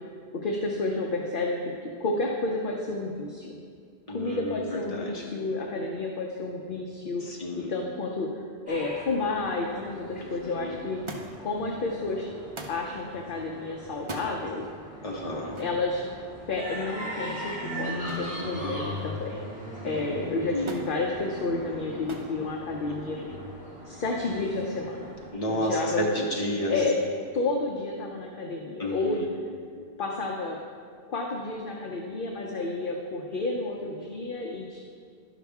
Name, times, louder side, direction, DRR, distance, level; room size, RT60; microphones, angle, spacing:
voice 1, 0.4-3.6 4.1-7.2 7.6-11.0 11.4-12.3 12.7-14.7 15.6-16.0 16.5-19.4 19.8-23.2 23.9-25.1 25.5-26.2 26.6-27.1 27.3-29.2 30.0-30.6 31.1-34.8, left 3 dB, 55° left, 0 dB, 0.8 m, -31 dB
voice 2, 4.1-5.3 7.2-7.7 10.4-10.7 15.0-15.6 20.5-20.8 22.9-23.4 25.3-26.7 28.8-29.3, equal, 35° left, -2 dB, 1.3 m, -31 dB
sound 1, 8.7-25.3, equal, 5° right, 2.0 m, -40 dB
Thump thud, 11.1-11.5 12.6-12.9 14.0-14.3 15.6-15.8 18.1-18.4 18.8-19.3 20.7-20.9 22.1-22.4 23.3-23.8 24.8-24.9, right 1 dB, 30° right, 0.7 m, -40 dB
11.5 x 5.8 x 3.5 m, 2.1 s
omnidirectional pair, 1.1 m